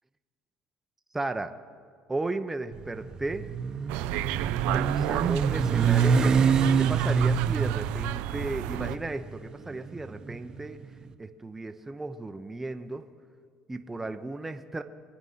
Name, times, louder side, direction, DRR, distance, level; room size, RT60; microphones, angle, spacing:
voice 1, 1.1-1.5 2.1-3.5 4.7-6.4 6.7-10.8 11.2-13.1 13.7-14.8, right 2 dB, 10° right, 7 dB, 0.7 m, -34 dB
Motorcycle, 2.7-10.9, right 6 dB, 35° right, 0.9 m, -26 dB
sound 1, 3.9-9.0, right 15 dB, 85° right, 0.5 m, -32 dB
24.5 x 9.0 x 5.6 m, 2.1 s
cardioid pair, 110°, 2 cm